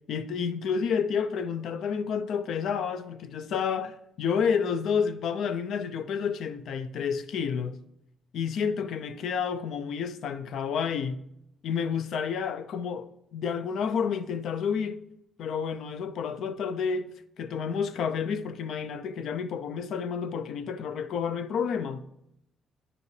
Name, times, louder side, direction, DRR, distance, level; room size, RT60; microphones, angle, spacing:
voice 1, 0.0-7.8 8.3-11.2 11.6-15.0 15.4-22.0, left 6 dB, 75° left, 0.5 m, -30 dB
9.5 x 5.0 x 3.2 m
cardioid pair, 90°, 0 cm